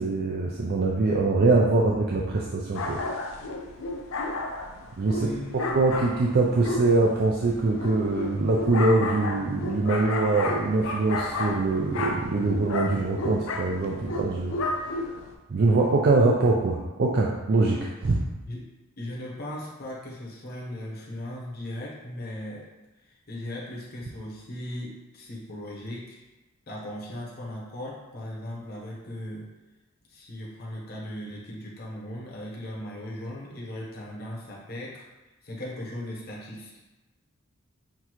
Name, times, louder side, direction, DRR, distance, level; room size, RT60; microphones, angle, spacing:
voice 1, 0.0-3.0 5.0-5.3 5.7-14.6 15.5-18.2, right 3 dB, 50° right, -2 dB, 0.4 m, -23 dB
sound 1, 2.7-15.3, left 2 dB, 65° left, 0.5 m, -32 dB
voice 2, 5.2-5.7 18.4-18.7 19.0-22.7 23.0-26.2 26.7-29.5 30.1-35.1 35.4-36.8, left 1 dB, 45° left, -4 dB, 0.9 m, -38 dB
5.9 x 2.7 x 3.0 m, 1.1 s
head